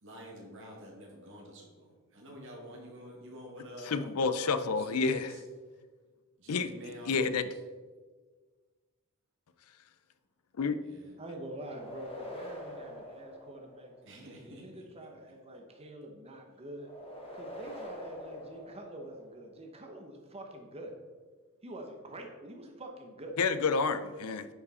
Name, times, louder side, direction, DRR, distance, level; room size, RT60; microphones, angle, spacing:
voice 1, 0.0-5.4 6.4-7.5 10.8-11.2 14.0-15.1, equal, 60° right, -2 dB, 2.1 m, -48 dB
voice 2, 3.8-5.3 6.5-6.7 7.1-7.5 10.6-10.8 23.4-24.5, left 4 dB, 85° left, 12 dB, 0.5 m, -29 dB
voice 3, 11.2-16.9 17.3-20.9 21.6-23.3, right 1 dB, 25° right, 3 dB, 1.0 m, -46 dB
sound 1, 11.4-14.2 16.8-19.5, equal, 25° left, 1.3 m, -45 dB
9.8 x 5.1 x 4.1 m, 1.4 s
head